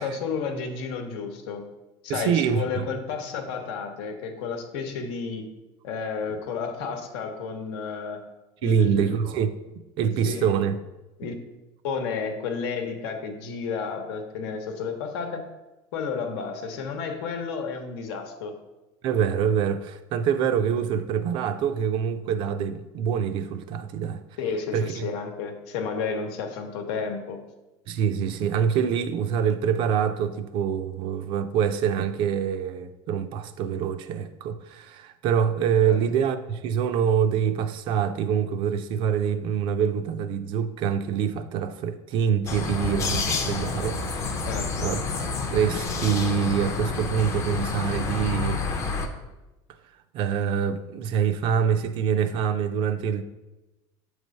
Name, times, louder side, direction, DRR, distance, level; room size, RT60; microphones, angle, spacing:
voice 1, 0.0-1.6 2.0-5.5 5.8-8.2 8.6-9.2 10.2-10.5 11.2-11.3 11.8-15.4 15.9-18.5 24.4-27.4 35.8-36.0 44.5-44.9, left 5 dB, 90° left, 1.0 m, -31 dB
voice 2, 2.1-2.9 8.6-9.5 10.0-10.8 19.0-24.2 24.7-25.1 27.9-44.4 44.8-45.0 45.5-48.6 50.1-53.2, right 8 dB, 40° right, 0.4 m, -25 dB
sound 1, 42.5-49.1, left 4 dB, 25° left, 0.5 m, -29 dB
7.4 x 3.2 x 5.2 m
cardioid pair, 170°, 13 cm